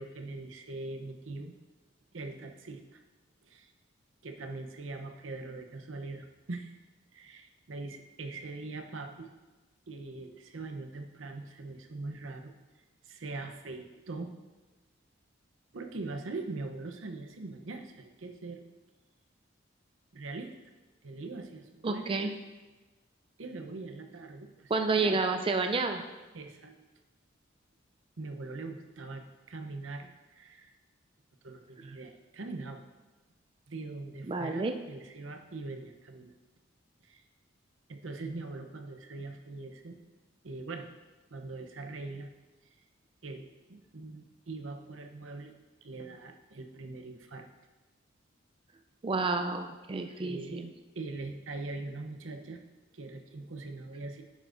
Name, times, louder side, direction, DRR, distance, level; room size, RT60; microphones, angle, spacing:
voice 1, 0.0-1.5 2.1-3.0 3.4-3.7 4.2-6.8 7.1-9.3 9.9-12.5 13.0-14.3 15.7-18.6 20.1-20.5 21.0-22.3 23.4-24.7 25.0-25.2 26.3-26.8 28.2-30.8 31.4-32.8 33.7-36.3 37.0-37.2 37.9-40.0 40.4-40.9 41.3-42.3 42.7-42.8 43.2-45.5 45.8-47.5 50.2-50.6 50.9-52.6 52.9-54.2, right 3 dB, 85° right, 5 dB, 0.8 m, -42 dB
voice 2, 21.8-22.3 24.7-26.0 34.3-34.7 49.0-50.7, right 3 dB, 25° right, 6 dB, 0.4 m, -30 dB
10.0 x 7.8 x 2.6 m, 1.2 s
head